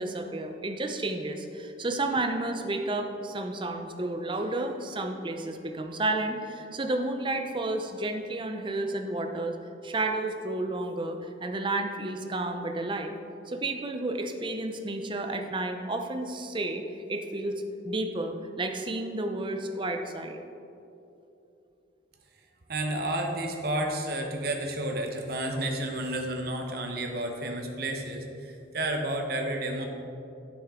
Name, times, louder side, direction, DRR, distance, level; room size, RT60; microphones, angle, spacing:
voice 1, 0.0-9.6 9.8-13.1 13.5-20.4, right 2 dB, 25° right, 5 dB, 0.6 m, -31 dB
voice 2, 22.7-29.9, right 1 dB, 55° right, 2 dB, 1.0 m, -31 dB
12.0 x 6.2 x 3.7 m, 2.8 s
head